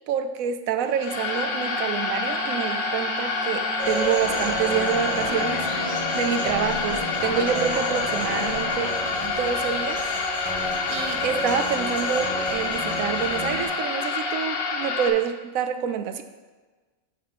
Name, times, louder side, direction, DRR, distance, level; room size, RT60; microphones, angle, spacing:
voice 1, 0.1-9.0 9.2-10.0 10.9-16.2, right 8 dB, 75° right, 9 dB, 1.0 m, -27 dB
sound 1, 0.9-15.1, left 4 dB, 85° left, 1.3 m, -28 dB
Bowed string instrument, 1.1-6.7, right 4 dB, 45° right, 0.5 m, -36 dB
sound 2, 3.8-13.7, equal, 20° right, 1.6 m, -31 dB
8.2 x 3.0 x 5.8 m, 1.3 s
omnidirectional pair, 1.5 m